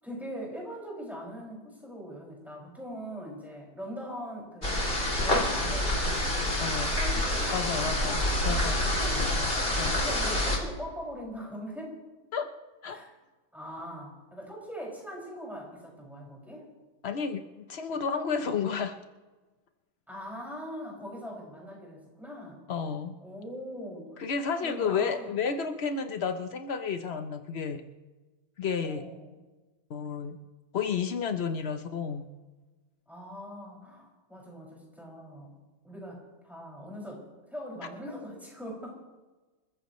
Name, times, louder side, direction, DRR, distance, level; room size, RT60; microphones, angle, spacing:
voice 1, 0.0-4.8 5.2-6.4 6.8-12.0 12.9-13.1 13.5-16.7 20.1-22.6 23.2-24.2 24.6-25.4 28.8-29.4 33.1-35.5 35.8-38.9, equal, ahead, -3 dB, 5.9 m, -41 dB
sound 1, 4.6-10.6, left 1 dB, 25° left, 3.1 m, -27 dB
voice 2, 6.6-6.9 7.5-8.8 9.8-10.0 12.3-12.5 12.8-13.0 17.0-17.4 17.7-19.0 22.7-23.2 24.2-27.8 28.6-29.0 29.9-30.4 30.7-32.3, left 6 dB, 65° left, 7 dB, 0.6 m, -31 dB
27.5 x 14.5 x 3.1 m, 1.2 s
omnidirectional pair, 2.2 m